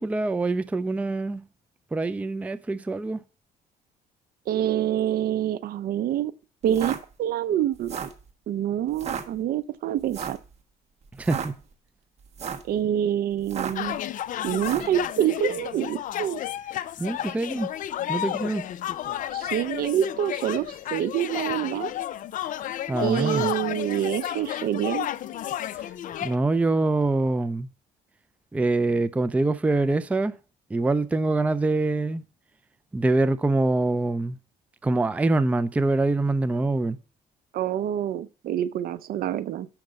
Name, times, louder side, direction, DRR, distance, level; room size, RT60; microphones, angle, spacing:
voice 1, 0.0-1.4 1.9-3.2 11.2-11.6 17.0-17.7 18.1-18.6 22.9-23.5 26.2-27.7 28.5-30.4 30.7-32.2 32.9-34.4 34.8-37.0, right 2 dB, 10° right, 0.4 m, -24 dB
voice 2, 4.5-6.3 6.6-8.0 8.5-10.4 12.7-14.0 14.4-16.4 19.3-21.9 23.0-25.1 37.5-39.7, right 10 dB, 60° right, 0.6 m, -26 dB
sound 1, 6.6-7.0 7.7-8.2 8.9-9.2 10.1-10.4 11.1-11.5 12.2-12.7 13.4-13.9 14.6-14.9, right 7 dB, 40° right, 1.2 m, -32 dB
sound 2, 13.8-26.4, left 11 dB, 50° left, 0.4 m, -32 dB
6.6 x 5.8 x 5.2 m
cardioid pair, 110°, 17 cm